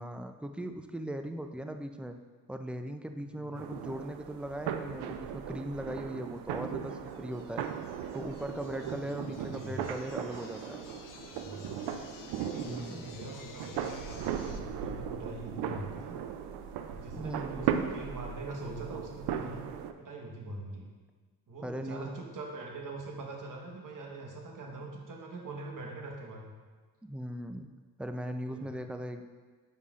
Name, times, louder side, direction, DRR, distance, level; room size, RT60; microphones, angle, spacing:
voice 1, 0.0-2.2 2.5-7.7 8.1-10.8 12.6-13.1 17.1-17.7 21.6-22.1 27.0-27.7 28.0-29.2, right 1 dB, 5° right, 6 dB, 0.4 m, -39 dB
voice 2, 3.2-3.6 8.5-8.7 8.9-9.9 11.3-12.0 12.4-16.2 16.9-19.6 20.0-20.9 21.5-26.5 28.4-28.7, right 2 dB, 55° right, 1 dB, 1.3 m, -43 dB
sound 1, 3.5-19.9, right 8 dB, 90° right, 0.5 m, -37 dB
sound 2, 6.9-14.6, left 6 dB, 55° left, 0.7 m, -52 dB
8.3 x 5.3 x 2.5 m, 1.4 s
cardioid pair, 70°, 38 cm